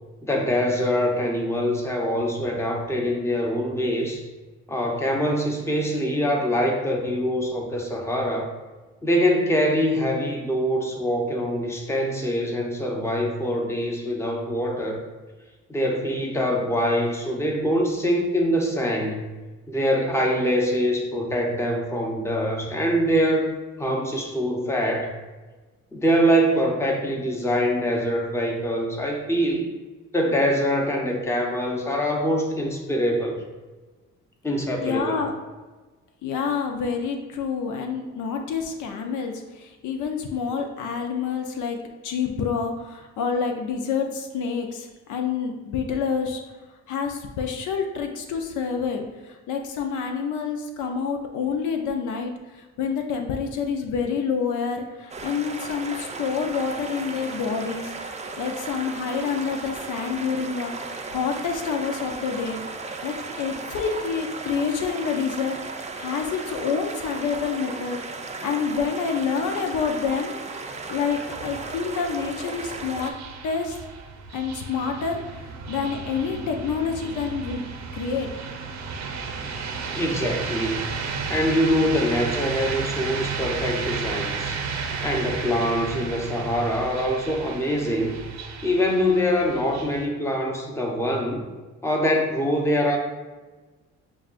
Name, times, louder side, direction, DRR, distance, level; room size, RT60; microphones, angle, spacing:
voice 1, 0.2-4.2 4.7-8.5 9.0-15.0 15.7-19.2 19.7-23.5 23.8-25.1 25.9-29.7 30.1-33.4 34.4-35.2 79.9-81.0 81.3-84.6 85.0-88.2 88.6-91.4 91.8-93.0, equal, 10° left, 1 dB, 0.7 m, -24 dB
voice 2, 34.8-35.3 36.2-41.8 42.0-46.4 46.9-57.9 58.4-62.6 63.0-70.4 70.9-73.1 73.4-73.8 74.3-77.6 77.9-78.3, left 6 dB, 80° left, 4 dB, 0.6 m, -28 dB
sound 1, 55.1-73.1, right 4 dB, 25° right, 0.4 m, -35 dB
sound 2, 71.1-90.1, right 5 dB, 65° right, 0.6 m, -33 dB
7.0 x 2.3 x 2.4 m, 1.3 s
cardioid pair, 90°, 30 cm